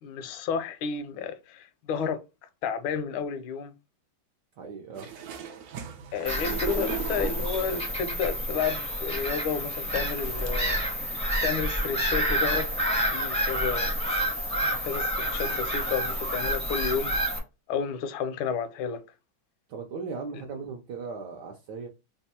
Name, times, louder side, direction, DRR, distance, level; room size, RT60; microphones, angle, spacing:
voice 1, 0.0-2.2 2.6-3.7 6.1-10.8 11.4-12.7 13.1-13.9 14.8-17.1 17.7-19.0 20.3-20.4, left 6 dB, 80° left, 1.4 m, -31 dB
voice 2, 4.6-5.1 19.7-21.9, right 5 dB, 70° right, 1.1 m, -37 dB
sound 1, 4.9-7.9 8.9-9.0 10.0-10.5 11.1-11.2 11.6-11.9 12.7-12.8, right 7 dB, 90° right, 0.8 m, -38 dB
Bird vocalization bird call bird song / Gull seagull, 6.3-17.4, equal, 5° left, 0.5 m, -29 dB
3.5 x 2.2 x 4.1 m
omnidirectional pair, 2.3 m